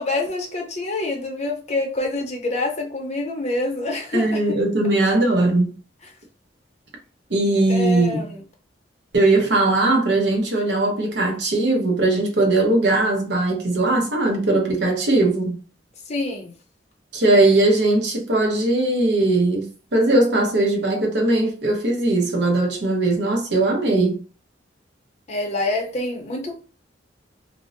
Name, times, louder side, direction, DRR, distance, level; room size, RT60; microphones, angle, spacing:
voice 1, 0.0-4.6 7.7-8.4 16.1-16.5 25.3-26.6, left 2 dB, 35° left, 0.6 m, -26 dB
voice 2, 4.1-5.7 7.3-8.3 9.1-15.6 17.1-24.2, right 2 dB, 65° right, 0.7 m, -19 dB
2.5 x 2.0 x 2.5 m
head